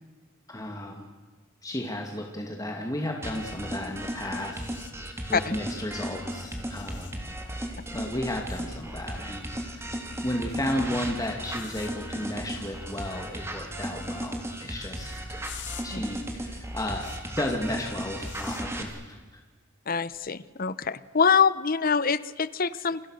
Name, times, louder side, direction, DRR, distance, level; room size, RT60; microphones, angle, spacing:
voice 1, 0.5-1.1 1.6-4.7 4.9-7.1 7.9-10.0 10.2-15.4 15.8-17.1 17.4-19.2, left 1 dB, 20° left, 1 dB, 2.4 m, -33 dB
sound 1, 3.2-18.8, right 1 dB, 15° right, 3.3 m, -35 dB
sound 2, 4.6-4.9 6.7-7.1 8.5-8.6 11.5-11.9 15.4-15.9 17.0-17.2 18.2-18.6 20.1-20.3, left 11 dB, 60° left, 2.3 m, -44 dB
voice 2, 19.9-23.0, left 6 dB, 45° left, 16 dB, 0.9 m, -25 dB
29.0 x 25.5 x 6.5 m, 1.4 s
head